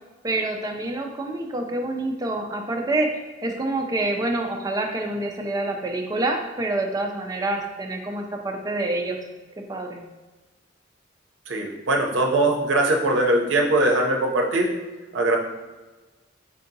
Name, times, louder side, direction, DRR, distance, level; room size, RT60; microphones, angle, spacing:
voice 1, 0.2-9.2 9.6-10.0, right 2 dB, 20° right, 2 dB, 0.4 m, -27 dB
voice 2, 11.5-14.7 15.1-15.4, right 2 dB, 75° right, 1 dB, 0.6 m, -21 dB
4.4 x 2.7 x 2.6 m, 1.2 s
head